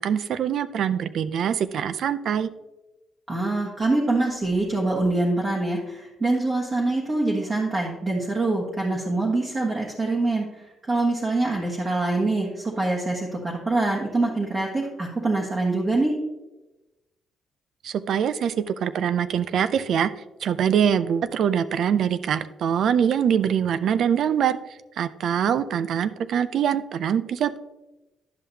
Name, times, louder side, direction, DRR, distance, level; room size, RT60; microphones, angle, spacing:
voice 1, 0.0-2.5 17.8-20.1 20.4-24.6 25.0-27.6, right 8 dB, 65° right, 13 dB, 0.4 m, -23 dB
voice 2, 3.3-16.1, right 2 dB, 30° right, -3 dB, 1.3 m, -24 dB
10.5 x 5.6 x 2.8 m, 1.0 s
cardioid pair, 90°, 0 cm